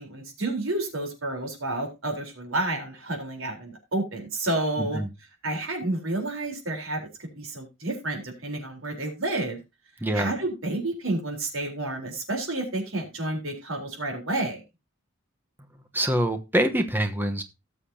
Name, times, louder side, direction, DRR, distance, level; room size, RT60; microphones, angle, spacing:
voice 1, 0.0-5.0 5.4-9.6 10.1-14.6, right 2 dB, 70° right, 2 dB, 4.0 m, -30 dB
voice 2, 4.8-5.1 10.0-10.3 15.9-17.4, right 1 dB, 10° right, 7 dB, 1.1 m, -25 dB
18.5 x 6.8 x 2.8 m, 0.25 s
head